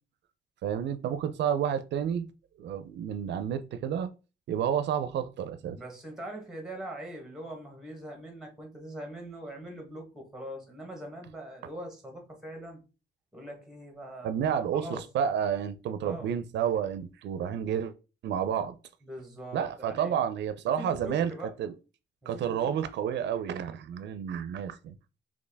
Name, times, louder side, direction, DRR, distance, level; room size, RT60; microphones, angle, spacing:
voice 1, 0.6-2.3 2.6-4.1 4.5-5.8 14.2-17.9 18.2-18.8 19.5-21.3 21.6-21.7 22.3-25.0, right 8 dB, 75° right, 0.4 m, -30 dB
voice 2, 5.8-12.8 13.3-15.0 16.0-16.3 19.0-20.1 20.7-21.5 22.2-22.7, right 1 dB, 5° right, 1.0 m, -42 dB
4.3 x 2.9 x 3.3 m
wide cardioid pair, 175°, 18 cm